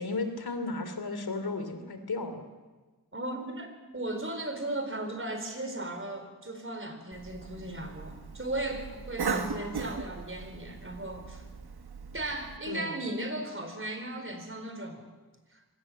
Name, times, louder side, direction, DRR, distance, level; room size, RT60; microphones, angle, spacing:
voice 1, 0.0-2.4 9.2-10.0 12.7-13.0, left 3 dB, 75° left, 8 dB, 3.2 m, -35 dB
voice 2, 3.1-11.5 12.1-15.1 15.5-15.6, right 1 dB, 35° right, 6 dB, 4.4 m, -36 dB
Cough, 7.1-12.6, right 6 dB, 80° right, 1.6 m, -38 dB
24.5 x 18.5 x 7.5 m, 1.3 s
wide cardioid pair, 60°, 38 cm